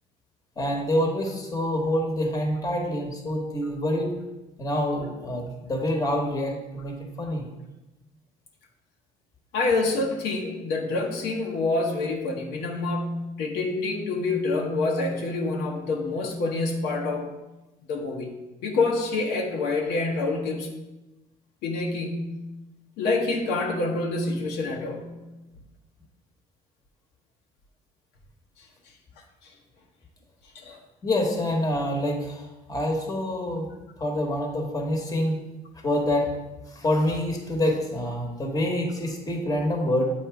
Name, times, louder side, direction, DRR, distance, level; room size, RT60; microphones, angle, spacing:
voice 1, 0.6-4.1 4.6-7.5 31.0-33.7 34.0-35.4 35.8-36.3 36.7-40.1, left 1 dB, 20° left, 2 dB, 1.1 m, -26 dB
voice 2, 9.5-17.3 17.9-18.3 18.6-20.7 21.6-22.3 23.0-25.2 30.5-30.8, left 3 dB, 90° left, 1 dB, 1.0 m, -27 dB
7.8 x 2.8 x 4.5 m, 1.0 s
cardioid pair, 110°, 17 cm